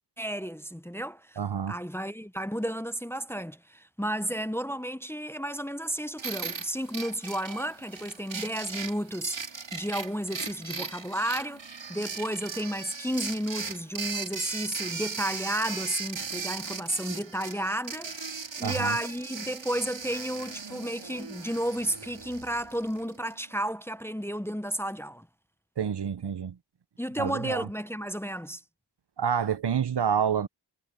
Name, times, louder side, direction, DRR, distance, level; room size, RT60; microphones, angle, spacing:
voice 1, 0.2-1.4 1.7-9.4 9.7-18.1 18.6-25.3 27.0-28.6, equal, 5° left, 0.7 m, -32 dB
voice 2, 1.4-1.8 18.6-19.0 25.8-26.6 27.2-27.7 29.2-30.5, right 8 dB, 65° right, 0.8 m, -28 dB
sound 1, 6.2-23.2, right 5 dB, 80° right, 3.0 m, -38 dB
wide cardioid pair, 60°, 44 cm